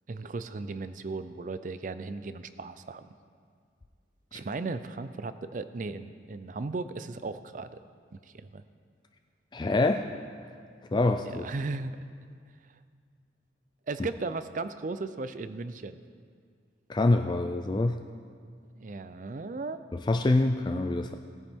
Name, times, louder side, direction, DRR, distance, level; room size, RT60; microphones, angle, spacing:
voice 1, 0.1-3.1 4.3-7.7 8.1-8.6 11.2-12.0 13.9-16.0 18.8-19.8, right 3 dB, 45° right, 12 dB, 0.4 m, -36 dB
voice 2, 9.5-10.0 10.9-11.4 16.9-18.0 19.9-21.1, left 2 dB, 25° left, 6 dB, 0.3 m, -25 dB
18.0 x 9.4 x 3.6 m, 2.1 s
head